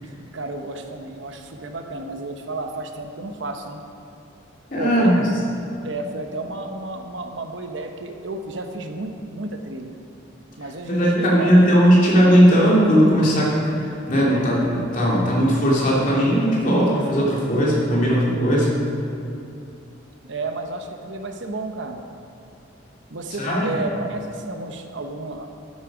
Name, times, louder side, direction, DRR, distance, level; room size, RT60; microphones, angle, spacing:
voice 1, 0.3-3.8 4.8-5.2 5.8-9.9 10.6-11.7 20.2-22.0 23.1-25.5, right 2 dB, 65° right, 5 dB, 0.9 m, -32 dB
voice 2, 4.7-5.1 10.8-13.5 13.8-18.8 23.4-23.6, equal, 40° left, -5 dB, 2.9 m, -17 dB
12.5 x 8.7 x 5.0 m, 2.6 s
head